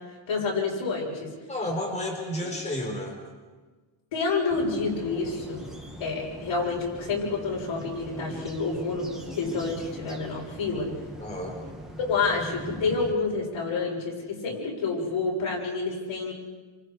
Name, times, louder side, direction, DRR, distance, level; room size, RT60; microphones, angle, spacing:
voice 1, 0.3-1.3 2.4-2.5 4.1-5.7 6.0-9.1 9.4-10.9 12.1-16.3, left 4 dB, 80° left, -2 dB, 7.3 m, -28 dB
voice 2, 1.5-3.2 11.2-11.6, left 1 dB, 15° left, -1 dB, 4.3 m, -31 dB
sound 1, 4.5-13.1, right 1 dB, ahead, 2.4 m, -41 dB
29.5 x 27.5 x 5.0 m, 1.3 s
wide cardioid pair, 180°, 47 cm